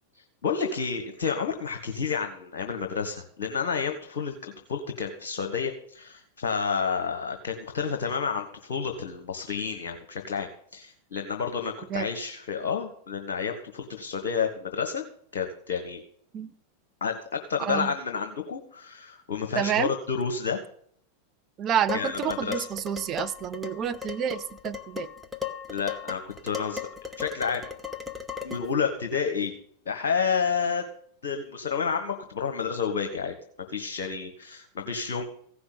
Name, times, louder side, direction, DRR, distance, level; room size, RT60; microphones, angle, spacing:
voice 1, 0.1-15.0 15.3-16.0 17.0-20.6 21.9-22.7 25.7-26.9 27.2-27.6 28.4-29.5 29.8-30.9 31.2-33.3 33.7-35.2, left 6 dB, 60° left, 5 dB, 1.3 m, -30 dB
voice 2, 17.6-17.9 19.5-19.9 21.6-25.1, right 9 dB, 30° right, 10 dB, 0.7 m, -29 dB
Dishes pots and pans, 21.9-28.8, left 7 dB, ahead, 1.4 m, -37 dB
15.5 x 6.0 x 8.1 m, 0.65 s
figure-of-eight pair, 90°, 0 cm